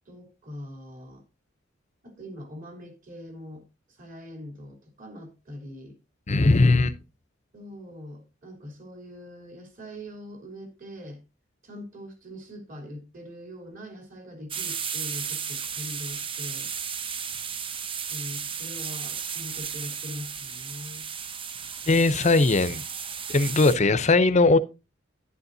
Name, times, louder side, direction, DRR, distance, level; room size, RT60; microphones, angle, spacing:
voice 1, 0.1-1.2 2.0-6.0 7.5-11.2 11.6-16.7 18.1-21.1 23.5-24.0, left 1 dB, 45° right, 3.5 m, -42 dB
voice 2, 6.3-6.9 21.9-22.8 23.3-24.6, left 3 dB, 35° left, 0.7 m, -19 dB
sound 1, 14.5-23.8, right 7 dB, 30° right, 0.7 m, -34 dB
11.0 x 11.0 x 2.7 m
head